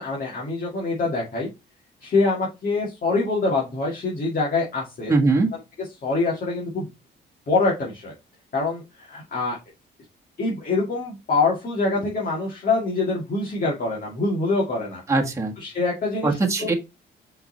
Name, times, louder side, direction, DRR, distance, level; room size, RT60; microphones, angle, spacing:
voice 1, 0.0-1.5 2.0-5.1 6.0-6.9 7.5-8.1 8.5-9.6 10.4-15.0 15.6-16.7, left 3 dB, 45° left, -3 dB, 2.3 m, -25 dB
voice 2, 5.1-5.5 15.1-15.5 16.2-16.7, right 3 dB, 15° right, 1 dB, 1.5 m, -21 dB
5.8 x 4.2 x 4.2 m, 0.25 s
cardioid pair, 90°, 20 cm